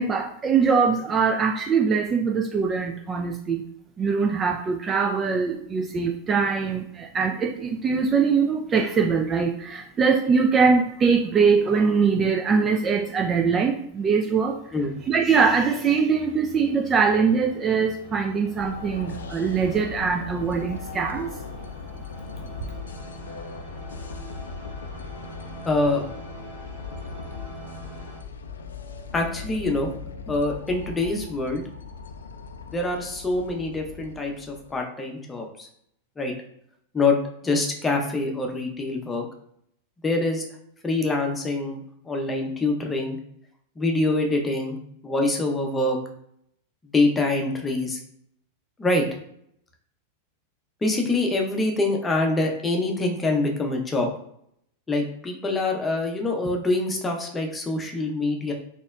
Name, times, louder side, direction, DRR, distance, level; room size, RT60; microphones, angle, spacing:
voice 1, 0.0-3.7 4.0-14.7 15.0-21.3, right 5 dB, 20° right, 3 dB, 0.3 m, -22 dB
sound 1, 13.9-28.2, right 1 dB, 75° right, 1.4 m, -45 dB
sound 2, 18.6-34.8, left 5 dB, 70° left, 0.4 m, -39 dB
voice 2, 25.7-26.0 29.1-31.6 32.7-35.7 36.2-36.3 36.9-37.2 37.4-39.2 40.0-40.4 40.8-41.8 42.0-43.2 43.8-44.8 45.0-46.0 46.9-48.0 48.8-49.0 50.8-54.1 54.9-58.5, left 2 dB, 15° left, 2 dB, 0.7 m, -25 dB
4.1 x 2.9 x 2.3 m, 0.71 s
figure-of-eight pair, 90°, 0 cm